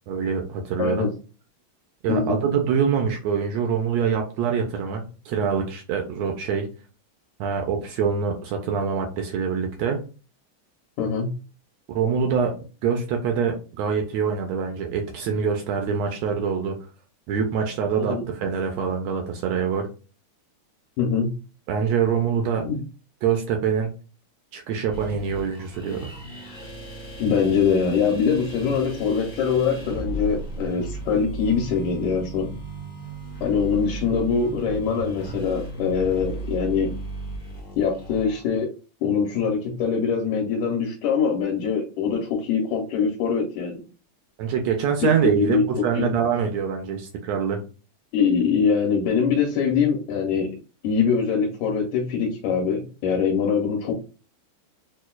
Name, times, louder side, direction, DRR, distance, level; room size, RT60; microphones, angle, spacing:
voice 1, 0.1-1.1 2.0-6.7 7.4-10.0 11.9-12.6 12.8-16.8 17.3-19.9 21.7-22.7 23.2-23.9 24.5-26.1 44.4-47.6, right 6 dB, 80° right, 3 dB, 1.5 m, -25 dB
voice 2, 0.8-1.1 2.1-2.4 11.0-11.3 18.0-18.2 21.0-21.3 22.6-22.8 27.2-32.5 33.4-36.9 37.8-38.7 39.0-43.8 45.2-46.1 48.1-50.5 50.8-53.9, left 6 dB, 80° left, -1 dB, 2.3 m, -23 dB
sound 1, 24.9-38.4, right 2 dB, 40° left, 0.6 m, -36 dB
6.3 x 2.3 x 2.2 m, 0.34 s
omnidirectional pair, 3.6 m